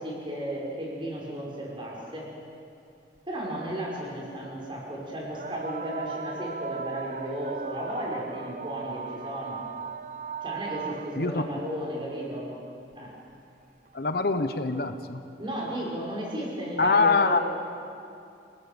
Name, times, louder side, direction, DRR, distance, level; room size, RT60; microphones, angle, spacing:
voice 1, 0.0-2.3 3.3-9.6 10.4-12.5 13.0-13.2 15.4-17.4, right 1 dB, 30° right, -3 dB, 5.7 m, -34 dB
sound 1, 3.2-3.3 5.3-11.5 12.9-13.0 13.9-14.0, right 5 dB, 45° right, 0.7 m, -37 dB
voice 2, 11.1-11.6 13.9-15.2 16.8-17.4, left 4 dB, 60° left, 9 dB, 1.0 m, -24 dB
28.5 x 18.5 x 7.0 m, 2.5 s
head